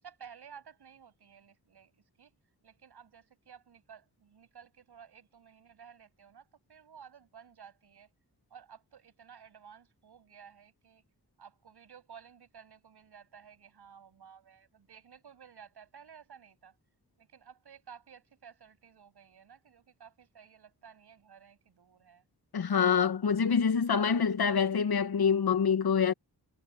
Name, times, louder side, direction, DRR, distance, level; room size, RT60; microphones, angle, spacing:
voice 1, 0.0-2.3 2.6-8.1 8.5-11.0 11.4-16.8 17.2-22.3, right 7 dB, 85° right, 7.9 m, -54 dB
voice 2, 22.5-26.1, left 6 dB, 70° left, 1.5 m, -26 dB
cardioid pair, 75°, 39 cm